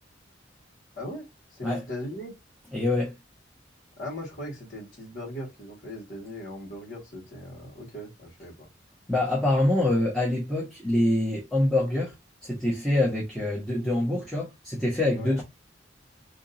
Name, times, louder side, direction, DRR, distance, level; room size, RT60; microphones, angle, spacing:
voice 1, 1.0-2.3 4.0-8.7 15.2-15.4, left 1 dB, 50° left, 2.2 m, -39 dB
voice 2, 2.7-3.1 9.1-12.1 12.4-15.4, left 1 dB, ahead, 1.2 m, -25 dB
3.5 x 3.0 x 2.6 m
head